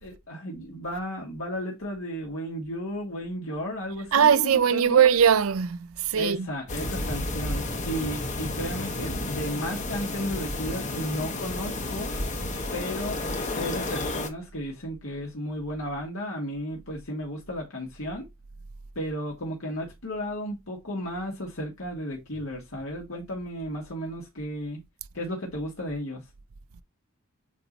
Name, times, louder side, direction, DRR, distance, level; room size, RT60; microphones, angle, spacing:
voice 1, 0.0-5.0 6.2-12.1 12.7-13.2 13.5-18.3 19.0-24.8 25.1-26.2, equal, 80° left, 2.0 m, -34 dB
voice 2, 4.1-6.5, right 8 dB, 85° right, 0.5 m, -20 dB
sound 1, 6.7-14.3, left 2 dB, 35° left, 1.0 m, -31 dB
8.3 x 2.8 x 4.0 m
head